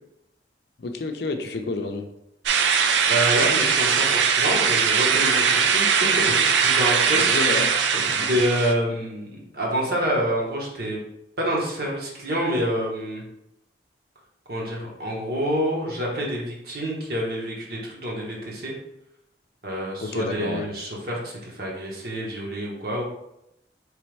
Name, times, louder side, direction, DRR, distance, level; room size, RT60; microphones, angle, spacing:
voice 1, 0.8-2.1 7.1-8.3 20.0-20.7, left 3 dB, 60° left, 5 dB, 0.5 m, -30 dB
sound 1, 2.5-8.7, right 6 dB, 80° right, 0.4 m, -20 dB
voice 2, 3.1-7.5 7.9-11.0 11.4-13.2 14.5-18.7 19.6-23.0, equal, 55° right, -3 dB, 1.2 m, -27 dB
4.1 x 3.3 x 3.3 m, 0.83 s
head